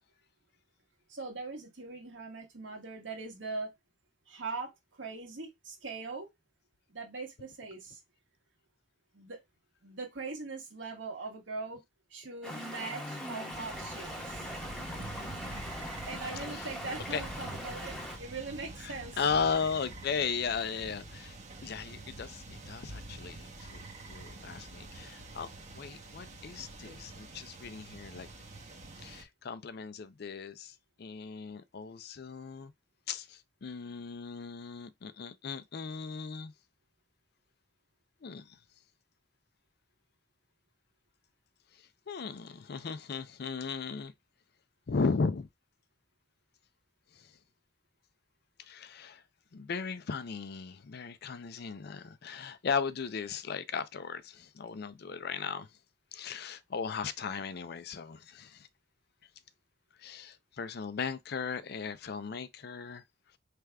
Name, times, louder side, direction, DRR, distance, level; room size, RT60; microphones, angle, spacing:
voice 1, 1.1-3.7 4.3-6.3 6.9-8.0 9.1-9.4 9.8-11.8 12.1-14.5 16.1-19.2, right 3 dB, 80° right, 1.6 m, -41 dB
Stream, 12.4-18.2, equal, 5° left, 1.1 m, -41 dB
sound 1, 13.5-29.2, right 2 dB, 40° right, 0.9 m, -46 dB
voice 2, 18.8-23.8 24.1-28.3 29.0-32.7 33.1-36.5 38.2-38.6 42.1-44.1 44.9-45.5 47.2-47.3 48.7-49.2 49.5-55.7 56.1-58.7 60.0-63.0, left 5 dB, 60° left, 0.5 m, -36 dB
4.8 x 3.3 x 2.3 m
head